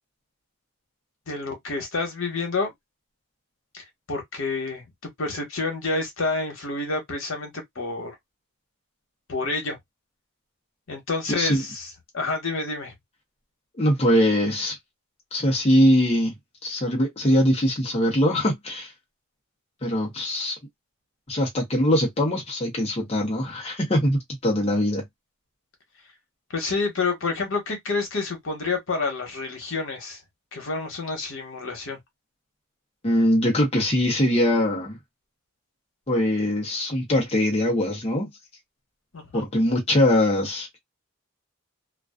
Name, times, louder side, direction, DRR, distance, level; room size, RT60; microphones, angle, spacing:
voice 1, 1.3-2.7 3.7-8.1 9.3-9.8 10.9-11.9 12.1-12.9 26.5-30.2 30.5-32.0 39.1-39.5, left 3 dB, 65° left, 1.1 m, -29 dB
voice 2, 11.3-11.6 13.8-14.8 15.3-16.3 16.6-18.9 19.8-20.6 21.3-25.0 33.0-35.0 36.1-38.3 39.3-40.7, equal, 30° left, 0.7 m, -22 dB
2.4 x 2.2 x 2.2 m
head